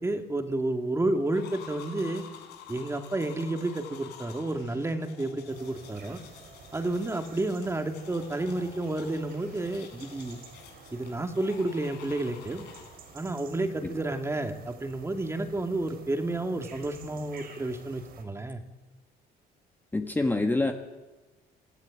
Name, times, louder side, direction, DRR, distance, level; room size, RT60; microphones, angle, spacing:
voice 1, 0.0-2.2 2.7-6.2 6.7-10.4 10.9-12.6 13.1-18.6, right 2 dB, 15° right, 5 dB, 2.4 m, -31 dB
sound 1, 1.3-13.2, left 8 dB, 85° left, 5.2 m, -49 dB
sound 2, 5.5-18.2, right 5 dB, 65° right, 5.0 m, -51 dB
voice 2, 19.9-20.7, left 2 dB, 10° left, 4 dB, 1.6 m, -26 dB
24.5 x 14.5 x 8.9 m, 1.2 s
cardioid pair, 110°, 17 cm